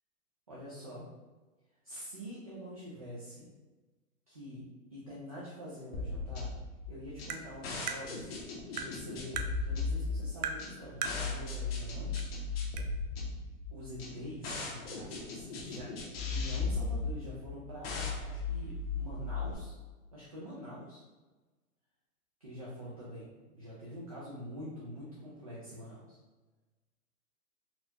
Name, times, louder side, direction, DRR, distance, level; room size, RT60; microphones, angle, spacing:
voice 1, 0.5-1.1 1.8-3.5 4.3-4.6 4.9-6.5 6.9-8.3 8.7-12.6 13.7-15.9 16.3-19.7 20.1-21.0 22.4-26.2, equal, 30° right, -8 dB, 0.3 m, -45 dB
sound 1, 5.9-19.5, left 4 dB, 40° left, 0.7 m, -37 dB
Tap, 7.3-7.4 7.9-8.0 8.8-8.9 9.4-9.5 10.4-10.6 11.0-11.2 12.2-12.3 12.8-12.9, right 6 dB, 90° right, 0.6 m, -36 dB
4.1 x 2.7 x 2.7 m, 1.2 s
hypercardioid pair, 150°, 45 cm